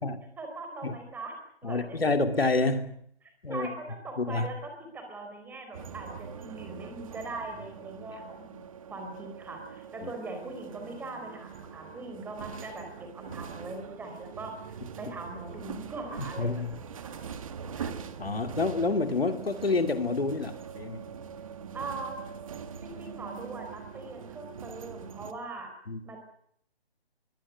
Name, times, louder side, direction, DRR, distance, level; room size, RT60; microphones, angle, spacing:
voice 1, 0.4-1.3 1.6-2.0 3.2-8.6 8.9-17.2 21.7-22.2 22.8-25.7 26.0-26.2, right 3 dB, 5° right, 4 dB, 4.2 m, -41 dB
voice 2, 1.6-2.9 3.4-3.7 4.2-4.5 10.0-10.1 16.4-16.7 17.8-17.9 18.2-21.0 25.9-26.0, left 3 dB, 65° left, 8 dB, 2.8 m, -28 dB
sound 1, 5.7-25.3, right 7 dB, 35° right, 1.8 m, -43 dB
23.0 x 17.5 x 9.8 m, 0.69 s
figure-of-eight pair, 145°, 32 cm